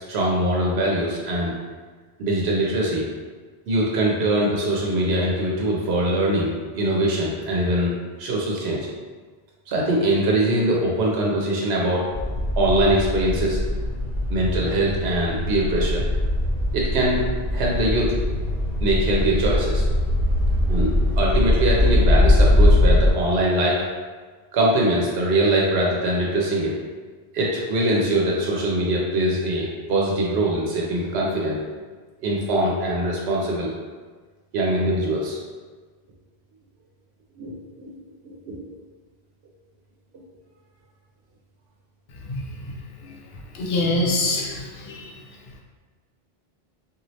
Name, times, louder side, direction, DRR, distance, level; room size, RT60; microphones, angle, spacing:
voice 1, 0.1-1.6 2.2-3.0 3.7-7.9 8.2-8.9 9.7-12.0 12.6-13.6 14.3-16.0 16.7-17.2 17.5-18.1 18.8-19.8 20.7-23.8 24.5-26.8 27.3-31.6 32.2-33.7 34.5-35.4 37.4-37.9 38.2-38.6, right 1 dB, 85° right, -3 dB, 0.8 m, -22 dB
sound 1, 12.1-23.1, left 1 dB, 40° left, 1.0 m, -21 dB
voice 2, 43.5-45.1, left 2 dB, 75° left, -1 dB, 0.8 m, -24 dB
3.0 x 2.4 x 2.7 m, 1.4 s
omnidirectional pair, 1.1 m